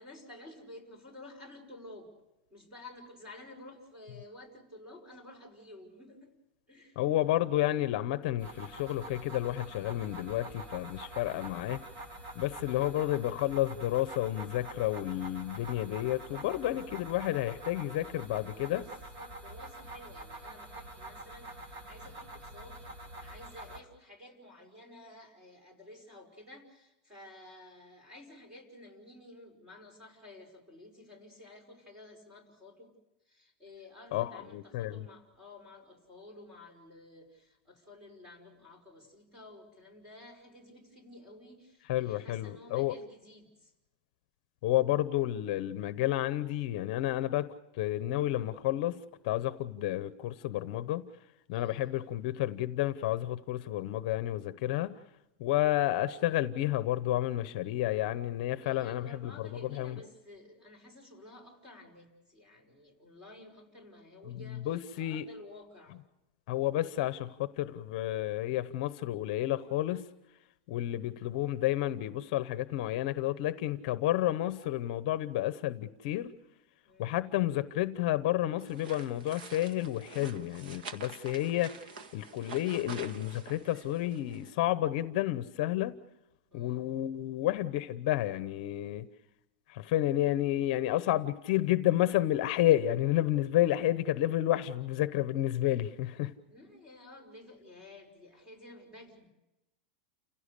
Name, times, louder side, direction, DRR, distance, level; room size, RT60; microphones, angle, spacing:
voice 1, 0.0-2.1 2.5-6.3 6.7-7.0 12.7-13.3 18.7-22.8 23.2-32.9 33.3-43.7 51.5-52.0 58.6-66.0 76.8-77.2 86.5-86.9 96.5-99.3, left 1 dB, 15° right, 2 dB, 5.4 m, -52 dB
voice 2, 7.0-11.8 12.3-18.8 34.1-35.0 41.9-42.9 44.6-47.5 47.8-49.0 49.2-51.0 51.5-54.9 55.4-60.0 64.3-65.3 66.5-70.0 70.7-76.3 77.0-81.7 82.1-85.9 86.5-89.1 89.7-96.3, left 14 dB, 50° left, 13 dB, 0.9 m, -30 dB
sound 1, 8.4-23.8, right 2 dB, 40° right, 2.4 m, -46 dB
sound 2, 78.6-84.5, right 5 dB, 65° right, 1.7 m, -47 dB
29.5 x 16.5 x 6.8 m, 0.96 s
supercardioid pair, 165°, 5 cm